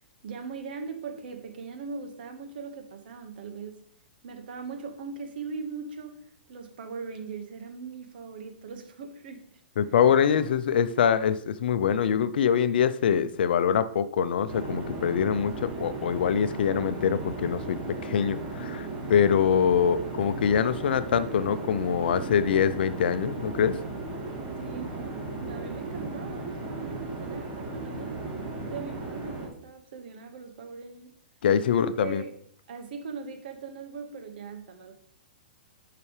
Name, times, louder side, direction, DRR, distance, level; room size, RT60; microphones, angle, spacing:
voice 1, 0.2-3.8 4.2-6.2 6.5-9.6 10.1-10.2 24.6-28.3 28.7-31.1 31.7-32.3 32.7-34.9, right 5 dB, 65° right, 6 dB, 1.5 m, -40 dB
voice 2, 9.8-23.8 31.4-32.2, left 8 dB, 65° left, 14 dB, 0.6 m, -24 dB
sound 1, 14.5-29.5, right 2 dB, 30° right, 3.2 m, -36 dB
11.0 x 5.8 x 3.3 m, 0.63 s
hypercardioid pair, 120°, 6 cm